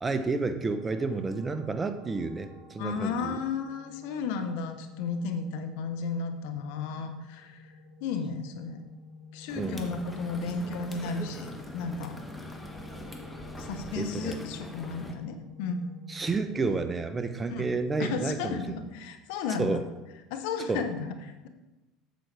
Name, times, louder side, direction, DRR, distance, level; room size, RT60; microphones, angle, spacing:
voice 1, 0.0-3.4 9.6-9.9 14.0-14.4 16.1-18.8 19.6-19.8 20.7-20.8, right 3 dB, 20° right, 10 dB, 0.8 m, -30 dB
sound 1, 0.6-16.6, left 4 dB, 60° right, 2.3 m, -50 dB
voice 2, 2.8-7.7 8.0-8.8 9.3-12.1 13.6-15.8 17.5-17.7 18.0-19.8 20.3-21.5, left 5 dB, 70° left, 8 dB, 0.8 m, -34 dB
sound 2, 9.5-15.2, left 1 dB, 10° left, 1.2 m, -43 dB
7.9 x 7.8 x 3.3 m, 1.1 s
hypercardioid pair, 85°, 0 cm